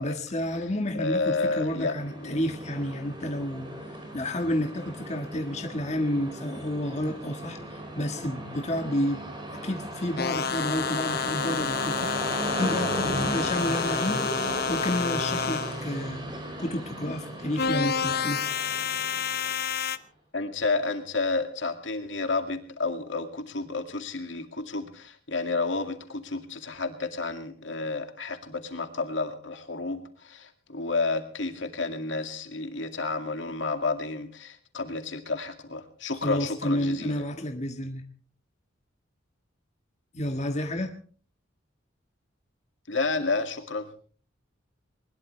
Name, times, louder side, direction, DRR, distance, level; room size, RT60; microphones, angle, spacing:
voice 1, 0.0-9.2 9.5-16.2 16.6-18.4 36.2-38.0 40.1-40.9, left 1 dB, 35° left, 4 dB, 1.6 m, -30 dB
voice 2, 1.0-1.9 2.2-2.4 13.5-13.7 20.3-37.2 42.9-43.9, left 3 dB, 70° left, 6 dB, 2.2 m, -31 dB
Train, 1.2-19.9, right 1 dB, 25° right, 5.0 m, -36 dB
sound 1, 10.2-15.8 17.6-20.0, left 6 dB, 55° left, 0.8 m, -29 dB
21.0 x 20.5 x 3.3 m, 0.42 s
head